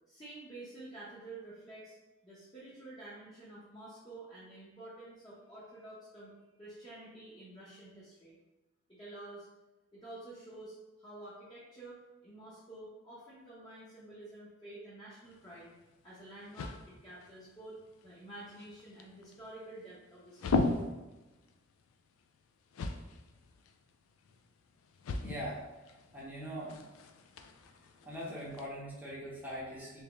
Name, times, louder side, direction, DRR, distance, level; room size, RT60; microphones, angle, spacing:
voice 1, 0.1-2.0 2.2-6.3 6.6-8.3 8.9-9.5 9.9-15.7 16.0-17.8 18.0-20.7, right 2 dB, 20° left, -9 dB, 0.8 m, -49 dB
sound 1, 15.3-28.7, left 3 dB, 90° left, 0.3 m, -40 dB
voice 2, 25.2-25.6 26.1-26.8 28.0-30.0, equal, 10° right, -7 dB, 0.8 m, -41 dB
3.4 x 3.0 x 3.0 m, 1.1 s
head